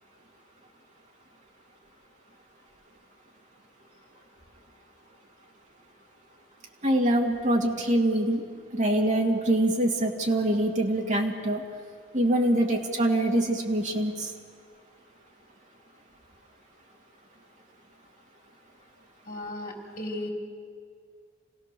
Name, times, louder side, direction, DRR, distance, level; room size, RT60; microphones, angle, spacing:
voice 1, 6.8-8.4 8.7-11.6 12.1-14.3, right 1 dB, 35° right, 0 dB, 2.4 m, -24 dB
voice 2, 19.3-20.3, left 1 dB, 40° left, -1 dB, 3.9 m, -36 dB
27.5 x 16.5 x 6.8 m, 2.1 s
head